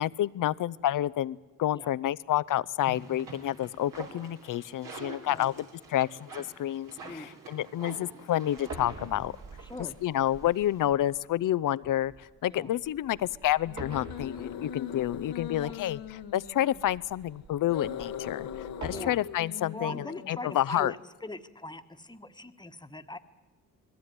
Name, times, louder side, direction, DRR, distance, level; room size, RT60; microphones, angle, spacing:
voice 1, 0.0-9.3 10.0-18.5 18.8-20.9, left 12 dB, 65° left, 19 dB, 0.7 m, -29 dB
sound 1, 2.8-10.8, right 3 dB, 70° right, 3.7 m, -47 dB
sound 2, 8.6-19.0, right 2 dB, 55° right, 3.1 m, -47 dB
sound 3, 9.0-9.3 9.8-9.9 13.6-16.9 17.6-20.6, left 8 dB, 85° left, 1.4 m, -40 dB
voice 2, 9.6-10.0 12.5-12.7 15.6-15.8 18.9-19.2 19.7-23.2, left 2 dB, 10° left, 9 dB, 1.4 m, -41 dB
20.5 x 15.5 x 9.6 m, 1.2 s
supercardioid pair, 60°, 34 cm